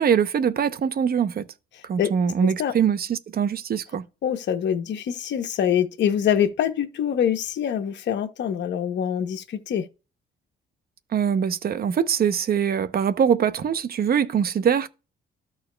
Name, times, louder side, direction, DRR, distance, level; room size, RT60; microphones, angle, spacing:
voice 1, 0.0-1.4 1.9-4.0 11.1-14.9, right 7 dB, 50° right, 0.7 m, -23 dB
voice 2, 4.2-9.9, left 9 dB, 65° left, 0.9 m, -24 dB
13.5 x 4.5 x 2.2 m
cardioid pair, 90°, 20 cm